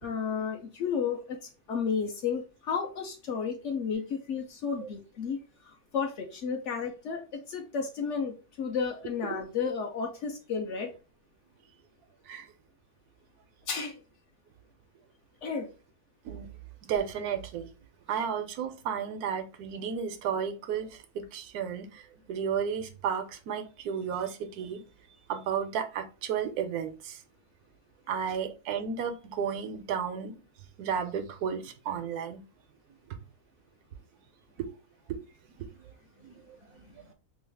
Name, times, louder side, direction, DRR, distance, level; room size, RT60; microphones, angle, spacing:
voice 1, 0.0-5.4 5.7-7.2 7.5-10.9 13.7-13.9 15.4-15.7, left 6 dB, 65° left, 0.8 m, -32 dB
voice 2, 16.9-17.7 18.1-22.0 22.3-24.8 25.3-27.2 28.1-30.3 30.8-32.4 34.6-34.7 35.6-35.7 36.2-36.3 37.0-37.1, right 7 dB, 85° right, 1.1 m, -33 dB
3.1 x 2.4 x 3.3 m
omnidirectional pair, 1.6 m